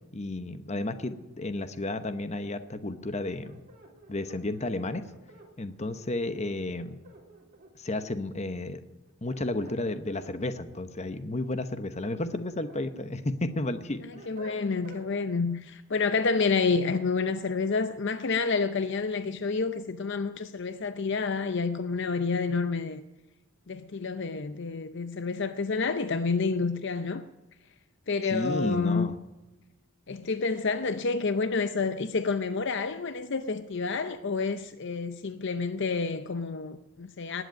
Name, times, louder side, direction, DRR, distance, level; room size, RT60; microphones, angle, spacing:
voice 1, 0.1-3.6 4.1-5.0 5.6-7.0 7.8-8.8 9.2-14.0 28.3-29.2, left 2 dB, 30° left, 0.9 m, -32 dB
sound 1, 3.4-5.5 6.8-7.9 9.1-10.3 11.7-12.8 13.3-15.1, right 2 dB, 40° right, 3.3 m, -51 dB
voice 2, 14.3-23.0 23.7-27.2 28.1-29.1 30.1-37.4, left 4 dB, 50° left, 0.6 m, -29 dB
19.5 x 8.0 x 9.1 m
head